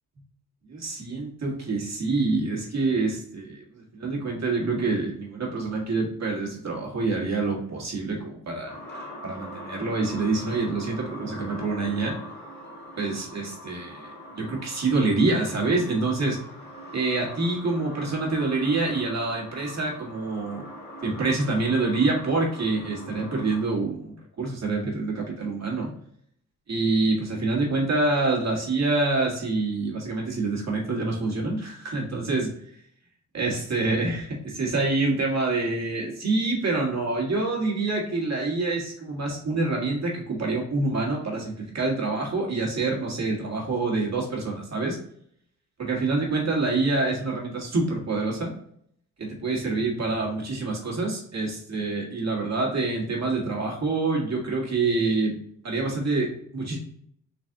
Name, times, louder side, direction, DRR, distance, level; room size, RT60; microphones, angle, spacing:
voice 1, 0.6-8.8 9.2-12.2 12.9-16.4 16.9-20.6 21.0-25.9 26.7-32.5 33.3-45.0 45.8-48.5 49.2-55.4 55.6-56.8, right 3 dB, 50° right, -2 dB, 1.8 m, -26 dB
sound 1, 8.7-23.6, equal, 30° left, 1.8 m, -42 dB
4.1 x 3.2 x 3.7 m, 0.67 s
cardioid pair, 60°, 35 cm